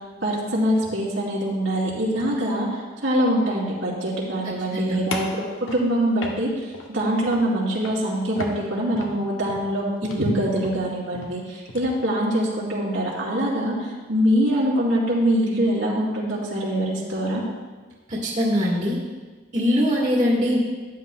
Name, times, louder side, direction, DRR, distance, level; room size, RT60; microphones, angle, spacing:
voice 1, 0.2-5.4 5.7-17.4, equal, 90° right, -6 dB, 3.3 m, -24 dB
sound 1, 5.1-6.9 7.2-7.6 7.8-8.1 8.4-12.0, left 2 dB, 85° left, 1.1 m, -35 dB
voice 2, 18.1-19.0 19.5-20.6, equal, 40° right, -5 dB, 1.6 m, -22 dB
13.0 x 10.0 x 2.2 m, 1.4 s
head